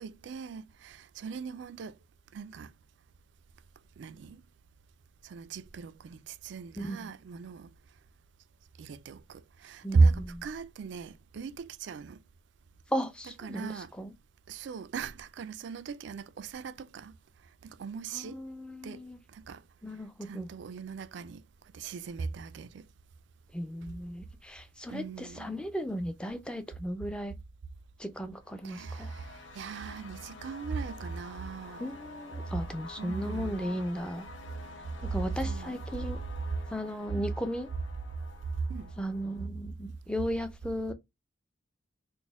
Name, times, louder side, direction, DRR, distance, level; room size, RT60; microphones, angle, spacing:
voice 1, 0.0-2.0 2.3-2.7 4.0-4.4 5.2-7.7 8.8-12.2 13.4-13.9 14.5-17.2 17.6-18.4 18.8-19.0 19.3-19.6 20.2-21.4 21.7-22.9 24.9-25.6 28.6-31.9 33.0-33.8 35.4-35.8 37.1-37.3 38.7-38.9, right 4 dB, 70° right, 0.3 m, -35 dB
voice 2, 6.8-7.1 9.8-10.4 12.9-14.1 18.1-19.2 19.8-20.5 23.5-27.3 28.0-29.1 31.8-34.3 35.1-36.2 36.7-37.7 39.0-40.9, equal, 5° left, 0.4 m, -36 dB
sound 1, 28.4-39.5, left 3 dB, 90° left, 0.6 m, -49 dB
4.1 x 2.1 x 3.4 m
head